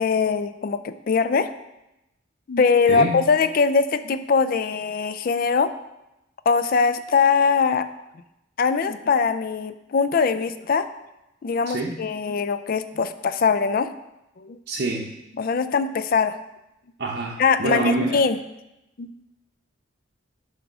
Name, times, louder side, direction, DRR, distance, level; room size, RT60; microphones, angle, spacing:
voice 1, 0.0-1.5 2.5-5.7 6.5-7.9 8.6-10.9 11.4-13.9 14.4-14.6 15.4-16.4 17.4-18.4 19.0-19.1, left 5 dB, 45° left, 12 dB, 0.4 m, -21 dB
voice 2, 2.9-3.2 11.7-12.0 14.7-15.1 17.0-18.2, right 2 dB, 55° right, -2 dB, 0.7 m, -26 dB
8.9 x 3.5 x 6.0 m, 0.92 s
head